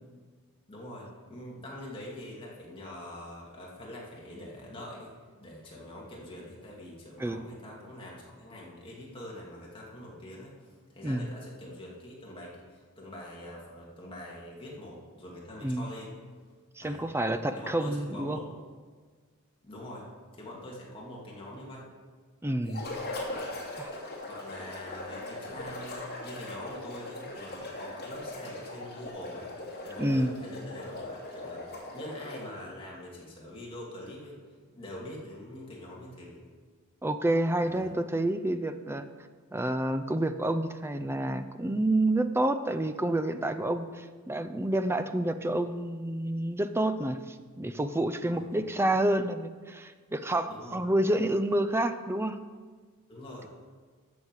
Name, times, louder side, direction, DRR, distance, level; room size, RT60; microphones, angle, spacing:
voice 1, 0.7-5.1 5.4-10.7 10.9-16.2 16.8-17.1 17.6-18.5 19.6-20.1 20.3-21.9 23.3-23.6 24.3-29.5 29.8-34.4 34.7-36.4 37.6-37.9 48.0-48.5 50.5-50.8 53.1-53.5, left 1 dB, 25° left, -4 dB, 2.4 m, -44 dB
voice 2, 16.8-18.4 22.4-22.8 23.8-23.9 30.0-30.3 37.0-39.1 39.5-52.4, right 1 dB, 10° right, 10 dB, 0.4 m, -29 dB
sound 1, 22.6-32.5, left 2 dB, 45° left, 2.6 m, -40 dB
13.0 x 7.2 x 4.7 m, 1.5 s
head